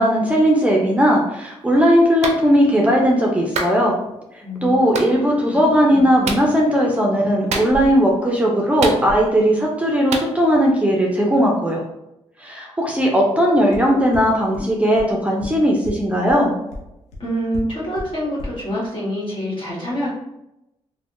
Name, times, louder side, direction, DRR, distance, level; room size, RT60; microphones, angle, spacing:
voice 1, 0.0-3.9 4.6-11.8 12.4-16.5, equal, 10° right, -1 dB, 0.6 m, -17 dB
Clapping, 2.2-2.4 3.6-3.8 4.9-5.1 6.2-6.5 7.5-8.0 8.8-9.4 10.1-10.3, right 4 dB, 75° right, 0.4 m, -26 dB
voice 2, 4.4-5.0 5.5-6.1 17.2-20.1, equal, 45° left, -6 dB, 1.5 m, -26 dB
sound 1, 13.7-13.8 14.1-14.2 14.5-14.6 14.9-15.0 15.4-15.5 15.8-15.9 16.3-16.4 16.7-16.8 17.1-17.2 17.5-17.6 17.9-18.0 18.4-18.5, left 2 dB, 90° left, 0.6 m, -31 dB
3.2 x 2.2 x 2.5 m, 0.88 s
cardioid pair, 75°, 11 cm